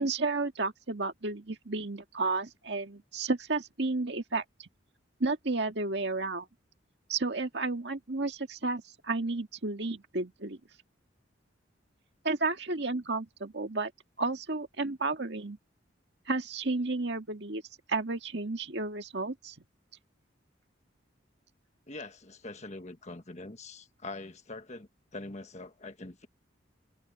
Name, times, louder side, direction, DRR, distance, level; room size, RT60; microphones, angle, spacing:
voice 1, 0.0-4.7 5.2-6.5 7.1-10.6 12.2-13.9 14.2-15.6 16.3-17.6 17.9-19.6, right 3 dB, 60° right, 1.9 m, -32 dB
voice 2, 21.9-26.3, left 2 dB, 35° left, 1.5 m, -43 dB
head